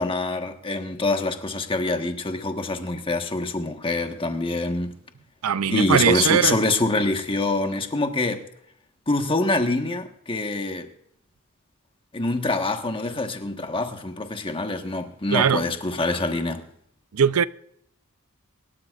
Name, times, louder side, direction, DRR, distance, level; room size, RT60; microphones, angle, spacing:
voice 1, 0.0-4.9 5.7-8.4 9.1-10.9 12.1-16.6, left 2 dB, 25° left, 1.3 m, -25 dB
voice 2, 5.4-6.6 15.3-15.7 17.1-17.4, right 7 dB, 75° right, 0.5 m, -20 dB
25.0 x 12.5 x 2.5 m
head